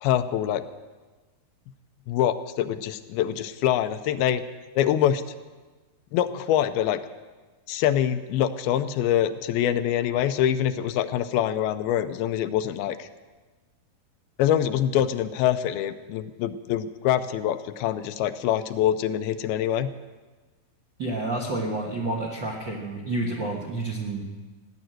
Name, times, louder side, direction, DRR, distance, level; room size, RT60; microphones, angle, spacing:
voice 1, 0.0-0.6 2.1-4.4 4.8-5.2 6.1-7.0 7.7-13.1 14.4-19.9, left 10 dB, 80° left, 11 dB, 2.5 m, -25 dB
voice 2, 21.0-24.2, right 2 dB, 60° right, -2 dB, 1.2 m, -29 dB
16.0 x 10.5 x 7.7 m, 1.3 s
omnidirectional pair, 4.5 m